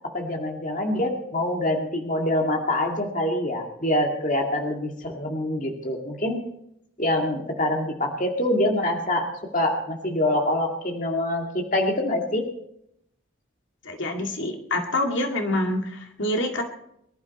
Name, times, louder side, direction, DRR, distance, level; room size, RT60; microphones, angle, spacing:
voice 1, 0.1-6.4 7.0-9.3 9.5-12.4, left 1 dB, 40° left, 2 dB, 2.2 m, -25 dB
voice 2, 13.8-16.6, left 1 dB, 70° left, 3 dB, 2.2 m, -26 dB
23.5 x 12.0 x 4.3 m, 0.75 s
head